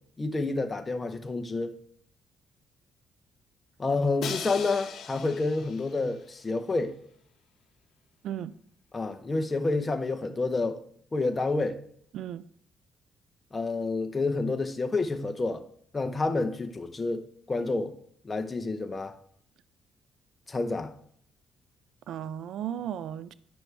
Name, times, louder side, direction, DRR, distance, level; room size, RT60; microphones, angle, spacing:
voice 1, 0.2-1.7 3.8-7.0 8.9-10.8 11.1-11.8 13.5-15.6 15.9-18.0 18.2-19.1 20.5-20.9, left 3 dB, 25° left, 0.8 m, -29 dB
Crash cymbal, 4.2-6.2, left 7 dB, 70° left, 0.9 m, -39 dB
voice 2, 22.1-23.3, right 10 dB, 75° right, 0.4 m, -35 dB
9.5 x 6.1 x 3.4 m
cardioid pair, 90°, 0 cm